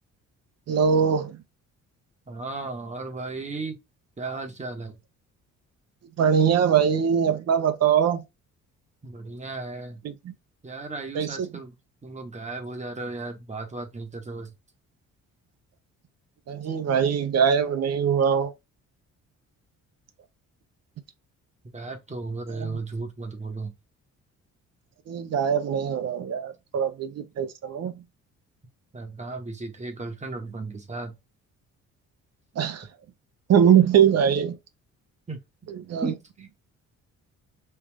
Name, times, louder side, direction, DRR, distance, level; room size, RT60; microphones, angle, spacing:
voice 1, 0.7-1.4 6.2-8.2 10.0-10.3 11.1-11.5 16.5-18.5 22.5-22.8 25.1-28.0 32.6-32.9 33.5-34.6 35.7-36.1, right 8 dB, 55° right, 0.7 m, -22 dB
voice 2, 2.3-3.8 4.2-5.0 9.0-10.0 10.6-11.8 12.0-14.5 21.7-23.7 28.9-31.1 35.3-35.4 36.0-36.5, right 3 dB, 25° right, 1.0 m, -35 dB
3.2 x 2.4 x 3.4 m
cardioid pair, 90°, 30 cm